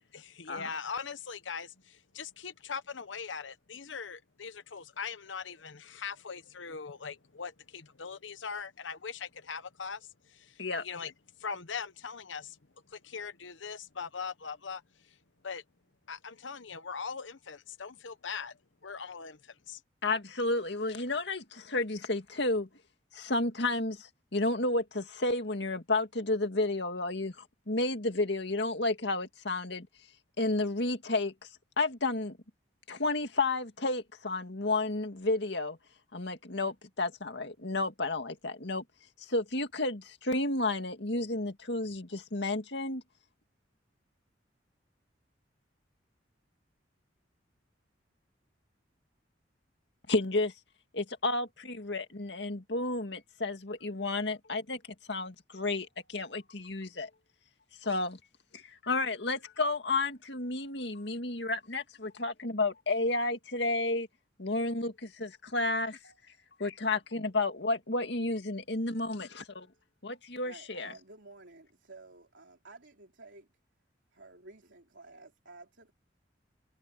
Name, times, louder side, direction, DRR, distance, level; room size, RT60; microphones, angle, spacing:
voice 1, 0.1-10.1 10.3-11.1 11.4-12.6 12.9-14.8 15.4-15.6 16.1-18.5 18.8-19.8, left 5 dB, 85° left, 1.0 m, -41 dB
voice 2, 20.0-22.7 23.1-29.9 30.4-31.3 31.8-32.4 32.9-35.8 36.1-38.8 39.2-43.0 50.1-50.5 50.9-54.8 55.1-57.1 57.8-58.2 58.5-64.1 64.4-66.1 66.6-69.7 70.0-70.9, left 2 dB, 65° left, 2.2 m, -31 dB
voice 3, 70.4-73.5 74.1-75.9, right 2 dB, 75° right, 3.4 m, -52 dB
head